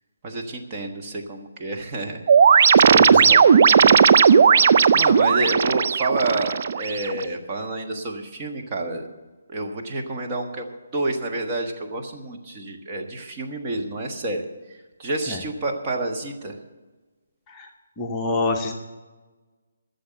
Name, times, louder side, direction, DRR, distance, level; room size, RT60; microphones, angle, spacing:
voice 1, 0.2-2.2 2.5-2.9 3.3-3.4 3.7-4.0 4.9-9.0 9.5-16.5, right 2 dB, 25° right, 1 dB, 1.4 m, -29 dB
sound 1, 2.3-7.3, right 6 dB, 40° right, 0.4 m, -15 dB
voice 2, 2.9-3.3 15.3-15.4 17.5-17.7 18.0-18.7, left 3 dB, 15° left, 1 dB, 0.9 m, -26 dB
13.5 x 7.1 x 8.8 m, 1.2 s
figure-of-eight pair, 140°, 0 cm